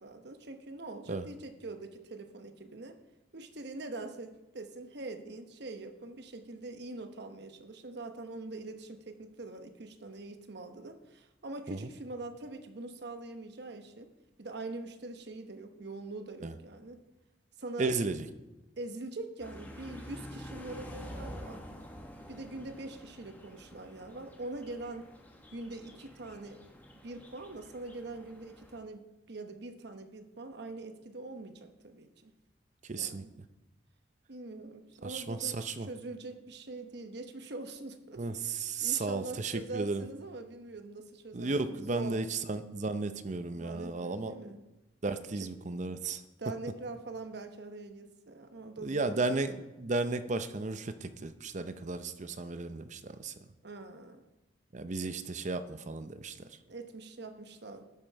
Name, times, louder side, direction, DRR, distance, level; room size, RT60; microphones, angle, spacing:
voice 1, 0.0-3.0 3.3-14.1 14.4-17.0 17.6-18.0 18.8-21.6 22.3-25.1 25.5-26.6 27.0-32.3 32.9-33.3 34.3-42.3 43.6-44.7 45.3-45.5 46.4-49.6 53.6-54.3 56.7-57.8, right 2 dB, 60° right, 7 dB, 0.9 m, -43 dB
voice 2, 17.8-18.2 32.9-33.2 35.0-35.9 38.2-38.3 38.6-40.0 41.3-44.3 45.0-46.2 48.8-53.3 54.7-56.3, right 3 dB, 40° right, 11 dB, 0.6 m, -34 dB
sound 1, 19.4-28.8, equal, 10° left, 1.4 m, -48 dB
12.0 x 7.4 x 4.6 m, 1.0 s
head